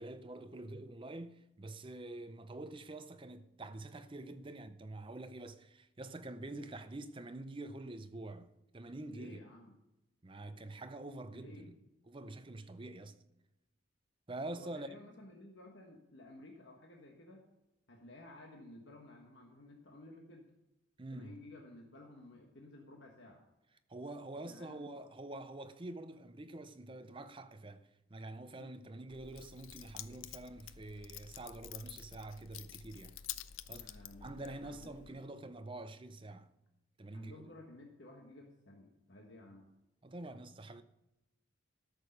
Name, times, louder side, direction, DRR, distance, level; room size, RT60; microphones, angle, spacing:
voice 1, 0.0-9.4 10.2-11.7 12.1-13.2 14.3-14.9 21.0-21.4 23.9-33.2 33.7-36.5 37.0-37.5 40.0-40.8, right 2 dB, 25° right, 0.6 m, -46 dB
voice 2, 9.1-9.8 11.3-11.7 14.5-17.4 17.9-20.4 21.1-23.4 24.4-24.9 28.5-28.8 33.7-35.0 37.1-39.7, left 2 dB, 60° left, 1.4 m, -54 dB
Keys jangling, 29.1-35.1, left 11 dB, 80° left, 0.5 m, -49 dB
13.0 x 6.6 x 5.2 m
head